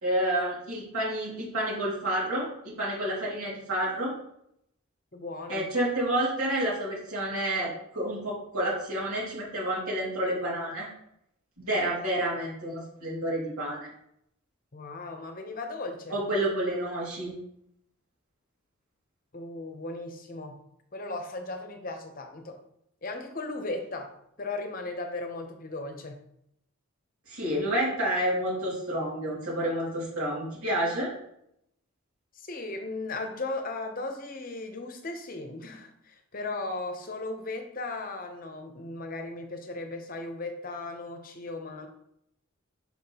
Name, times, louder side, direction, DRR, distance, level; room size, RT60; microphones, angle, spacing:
voice 1, 0.0-4.1 5.5-10.9 11.6-13.9 16.1-17.3 27.3-31.1, right 1 dB, 85° right, -6 dB, 2.4 m, -29 dB
voice 2, 5.1-5.7 14.7-16.2 19.3-20.6 20.9-22.6 23.0-24.1 24.4-26.2 32.3-41.9, left 2 dB, 40° left, 5 dB, 0.7 m, -36 dB
5.8 x 5.7 x 2.9 m, 0.76 s
head